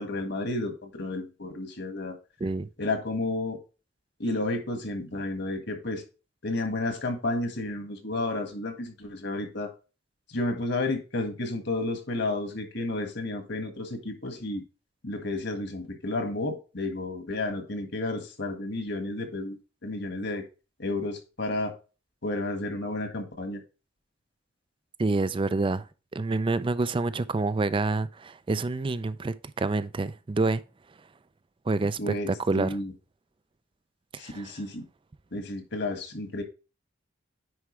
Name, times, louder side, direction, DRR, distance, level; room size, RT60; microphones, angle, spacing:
voice 1, 0.0-2.2 2.8-3.6 4.2-6.0 6.4-9.7 10.3-14.6 15.0-20.4 20.8-21.7 22.2-23.6 32.0-32.9 34.2-34.9 35.3-36.4, left 2 dB, 65° left, 1.7 m, -31 dB
voice 2, 25.0-25.8 26.1-30.6 31.7-32.1 32.5-32.7 34.2-34.5, right 3 dB, 25° right, 0.4 m, -27 dB
9.7 x 4.6 x 3.2 m
head